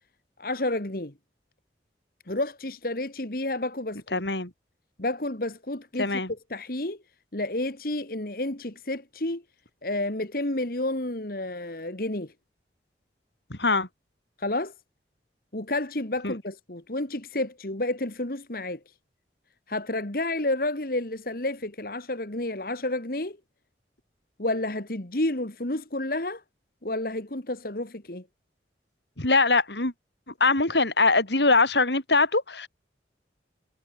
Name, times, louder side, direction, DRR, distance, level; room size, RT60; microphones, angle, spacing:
voice 1, 0.4-1.1 2.3-4.2 5.0-7.0 7.3-9.4 9.8-12.3 14.4-14.7 15.5-18.8 19.7-23.4 24.4-26.4 26.8-28.2, left 2 dB, 55° left, 2.2 m, -30 dB
voice 2, 4.1-4.5 6.0-6.3 13.5-13.9 16.2-16.3 29.2-29.9 30.3-32.7, left 3 dB, 75° left, 4.6 m, -22 dB
head